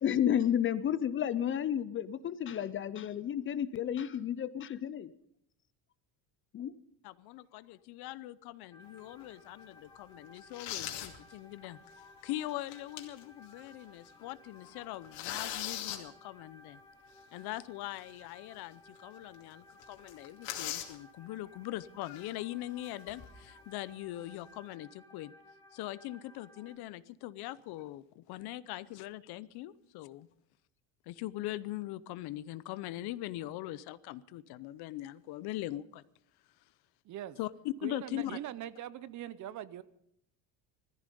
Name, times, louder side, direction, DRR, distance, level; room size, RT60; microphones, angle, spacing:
voice 1, 0.0-5.1 6.5-6.7, left 9 dB, 30° left, 15 dB, 0.5 m, -31 dB
voice 2, 7.0-16.8 17.3-25.3 25.7-30.3 31.1-36.0 37.4-38.4, left 15 dB, 65° left, 17 dB, 0.8 m, -41 dB
sound 1, 8.7-26.8, left 1 dB, 10° left, 1.5 m, -59 dB
sound 2, 9.0-9.2 9.8-9.9 10.4-11.2 11.6-11.7 12.5-13.3 13.7-13.8 14.1-14.3 14.7-16.0 18.0-18.1 18.6-18.7 19.0-19.1 19.3-19.5 19.8-21.0 22.0-22.3 22.8-23.5, left 11 dB, 85° left, 2.6 m, -39 dB
voice 3, 37.0-37.4 37.8-39.8, right 12 dB, 45° right, 17 dB, 0.7 m, -42 dB
17.5 x 14.5 x 5.4 m, 0.71 s
cardioid pair, 150°, 42 cm